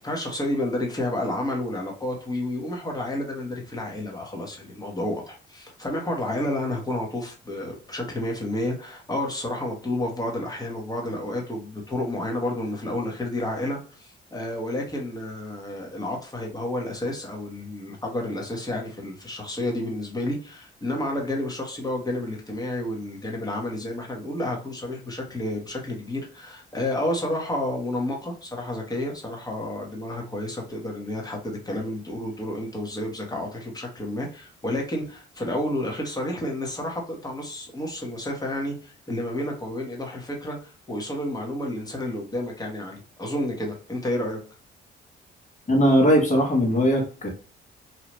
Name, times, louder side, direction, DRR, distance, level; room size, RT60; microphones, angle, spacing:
voice 1, 0.0-44.4, left 1 dB, 20° left, 0 dB, 1.1 m, -30 dB
voice 2, 45.7-47.3, equal, 40° left, 0 dB, 1.3 m, -19 dB
2.8 x 2.4 x 3.1 m, 0.39 s
cardioid pair, 90°, 20 cm